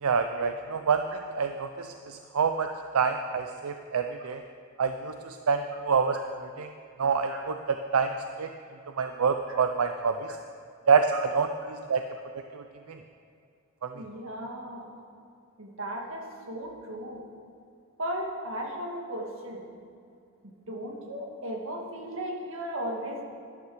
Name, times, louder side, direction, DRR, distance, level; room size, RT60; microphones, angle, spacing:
voice 1, 0.0-1.0 1.4-2.7 2.9-4.4 4.8-6.7 7.0-8.1 8.4-8.5 9.0-10.3 10.9-12.0 12.5-13.0 13.8-13.9, right 5 dB, 90° right, 7 dB, 0.5 m, -27 dB
voice 2, 13.9-15.0 15.6-17.3 18.0-19.7 20.4-23.2, right 1 dB, 65° right, 1 dB, 1.9 m, -36 dB
13.0 x 11.5 x 4.8 m, 2.5 s
head